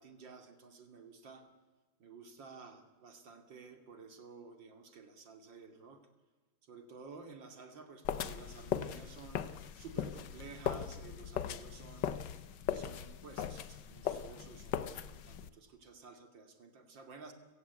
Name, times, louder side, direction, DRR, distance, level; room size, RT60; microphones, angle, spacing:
voice 1, 0.0-1.5 2.0-6.0 6.6-9.5 9.8-12.1 12.7-17.3, right 4 dB, 65° right, 7 dB, 3.2 m, -53 dB
sound 1, 8.0-15.5, left 9 dB, 65° left, 1.6 m, -39 dB
30.0 x 18.0 x 8.2 m, 1.3 s
omnidirectional pair, 2.2 m